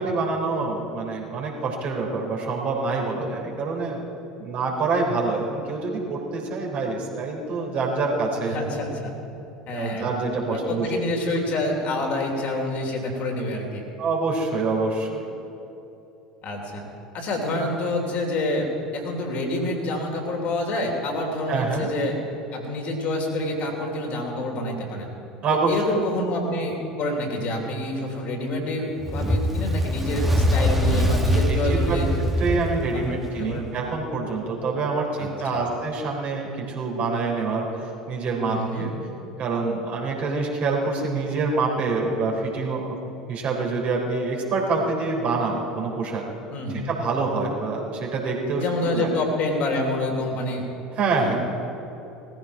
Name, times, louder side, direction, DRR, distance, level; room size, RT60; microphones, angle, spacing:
voice 1, 0.0-4.0 4.4-8.6 9.7-10.9 14.0-15.3 21.5-21.9 25.4-25.8 31.5-32.0 32.4-38.9 39.4-43.0 43.3-46.2 46.8-49.1 51.0-51.4, right 3 dB, 40° right, -1 dB, 3.4 m, -26 dB
voice 2, 8.4-9.1 9.7-10.1 10.5-13.8 16.4-16.8 17.1-22.2 22.5-25.1 25.7-32.1 32.9-33.7 35.2-35.7 38.4-38.9 46.5-46.9 48.6-50.6 51.2-51.4, left 1 dB, 45° left, 1 dB, 3.1 m, -27 dB
Fire, 29.0-33.6, equal, 5° right, 1.8 m, -23 dB
18.5 x 14.5 x 4.8 m, 2.9 s
figure-of-eight pair, 70°, 3 cm